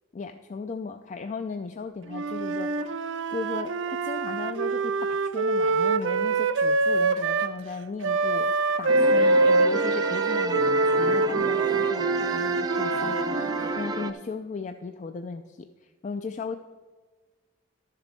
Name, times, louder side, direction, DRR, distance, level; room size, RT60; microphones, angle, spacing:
voice 1, 0.1-3.0 3.3-16.6, left 4 dB, 40° left, 7 dB, 0.4 m, -36 dB
Wind instrument woodwind instrument, 2.1-7.5 8.0-13.9, right 3 dB, 75° right, 0.5 m, -25 dB
sound 1, 8.9-14.1, right 3 dB, 20° right, 0.5 m, -31 dB
12.0 x 6.9 x 4.5 m, 1.4 s
head